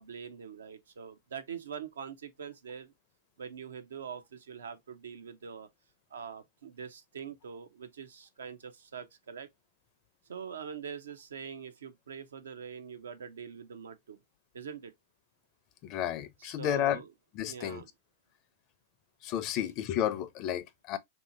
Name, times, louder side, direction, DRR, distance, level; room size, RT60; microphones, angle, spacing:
voice 1, 0.0-2.9 3.4-5.7 6.1-9.5 10.3-14.2 14.5-14.9 16.4-17.1 17.4-17.9, right 7 dB, 80° right, 0.5 m, -43 dB
voice 2, 15.8-17.0 17.3-17.8 19.2-21.0, left 10 dB, 45° left, 0.5 m, -32 dB
2.8 x 2.7 x 2.5 m
hypercardioid pair, 110°, 0 cm